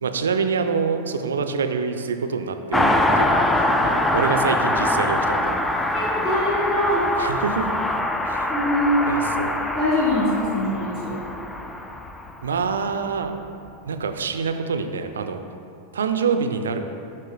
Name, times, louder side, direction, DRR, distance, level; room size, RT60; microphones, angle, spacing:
voice 1, 0.0-5.6 7.2-7.8 8.3-8.5 9.1-9.7 12.4-13.3 13.9-15.4 15.9-16.8, right 5 dB, 65° right, 7 dB, 0.4 m, -26 dB
Car passing by, 2.7-12.7 12.9-13.0, left 1 dB, 5° left, 0.3 m, -23 dB
voice 2, 5.9-7.0 8.5-9.1 9.7-11.2, left 1 dB, 35° left, -10 dB, 1.5 m, -23 dB
7.7 x 4.3 x 3.7 m, 2.6 s
figure-of-eight pair, 90°, 0 cm